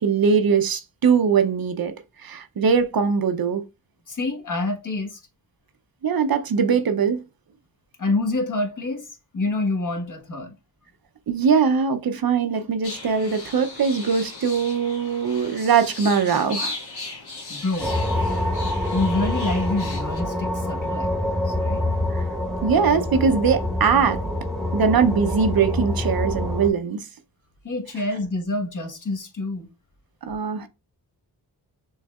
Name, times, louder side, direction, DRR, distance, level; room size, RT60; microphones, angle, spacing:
voice 1, 0.0-3.6 6.0-7.2 11.3-16.8 22.1-22.3 22.6-24.2 24.7-27.0 30.2-30.7, right 6 dB, 60° right, 0.6 m, -21 dB
voice 2, 4.1-5.2 8.0-10.5 17.5-17.9 18.9-21.8 27.6-29.7, left 2 dB, 45° left, 1.3 m, -27 dB
sound 1, 12.8-20.2, left 3 dB, 70° left, 1.7 m, -37 dB
sound 2, 17.8-26.7, left 1 dB, ahead, 1.0 m, -26 dB
6.3 x 3.2 x 2.3 m
wide cardioid pair, 70°, 41 cm